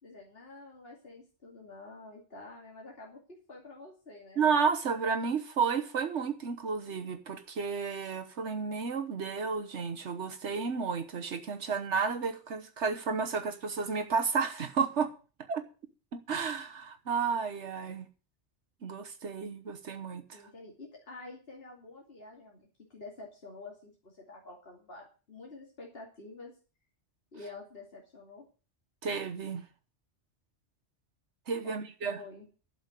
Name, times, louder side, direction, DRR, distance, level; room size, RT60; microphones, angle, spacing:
voice 1, 0.0-4.4 20.3-26.5 27.3-28.4 31.6-32.5, left 2 dB, 55° left, 3.0 m, -48 dB
voice 2, 4.4-15.1 15.5-15.6 16.1-18.1 18.8-20.4 29.0-29.6 31.5-32.2, right 5 dB, 75° right, 1.4 m, -32 dB
12.0 x 7.0 x 8.1 m
omnidirectional pair, 1.2 m